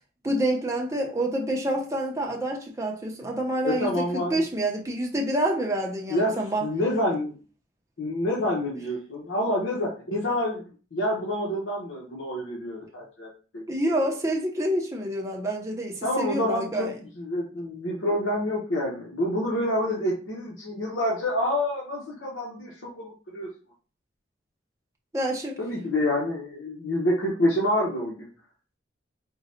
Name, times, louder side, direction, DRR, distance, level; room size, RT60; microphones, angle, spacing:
voice 1, 0.2-6.7 13.7-16.9 25.1-25.6, right 1 dB, 15° right, 0.7 m, -27 dB
voice 2, 3.6-4.4 6.1-6.3 6.6-7.4 8.0-10.6 10.9-13.6 16.0-16.9 17.1-23.5 25.6-28.3, left 1 dB, 80° left, 0.9 m, -27 dB
3.8 x 2.2 x 4.2 m
head